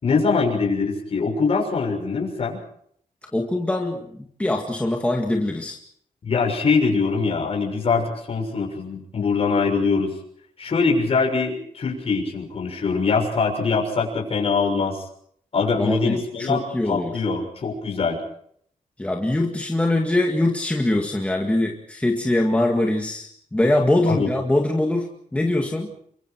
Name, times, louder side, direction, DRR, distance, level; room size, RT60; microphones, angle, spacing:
voice 1, 0.0-2.6 6.2-10.1 10.6-15.0 15.5-18.2 24.1-24.3, left 4 dB, 45° left, 1 dB, 6.5 m, -23 dB
voice 2, 3.3-5.8 15.7-17.2 19.0-25.9, left 1 dB, 10° left, 1 dB, 2.0 m, -23 dB
29.0 x 24.0 x 4.6 m, 0.65 s
wide cardioid pair, 175°, 14 cm